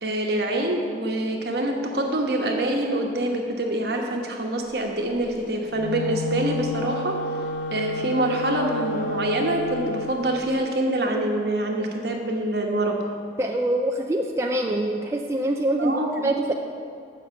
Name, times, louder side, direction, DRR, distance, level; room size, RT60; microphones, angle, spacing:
voice 1, 0.0-7.2 7.7-12.9 15.8-16.3, right 1 dB, 60° right, 1 dB, 1.1 m, -25 dB
Wind instrument woodwind instrument, 5.7-10.2, left 1 dB, 90° left, 0.6 m, -30 dB
voice 2, 13.4-16.5, right 1 dB, 15° right, 1 dB, 0.4 m, -24 dB
7.6 x 5.7 x 7.1 m, 2.4 s
head